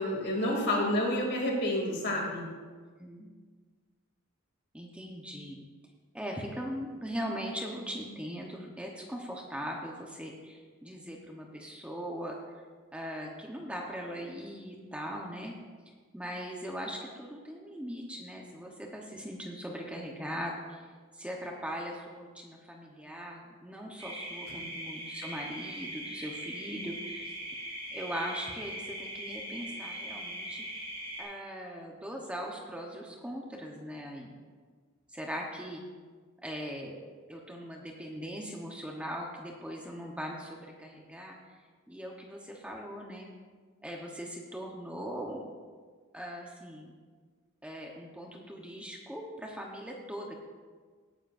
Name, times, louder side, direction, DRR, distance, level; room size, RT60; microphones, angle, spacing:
voice 1, 0.0-2.4 24.5-24.6, left 1 dB, 55° left, -1 dB, 2.8 m, -29 dB
voice 2, 3.0-3.3 4.7-5.6 6.1-12.6 12.9-15.5 16.1-20.9 21.1-27.3 27.9-30.6 31.2-34.3 35.1-35.8 36.4-37.0 37.3-41.4 41.9-43.3 43.8-45.4 46.1-46.9 47.6-50.4, equal, 5° right, -1 dB, 1.0 m, -40 dB
sound 1, 24.0-31.2, right 1 dB, 30° right, 3.5 m, -40 dB
17.5 x 10.5 x 2.6 m, 1.5 s
head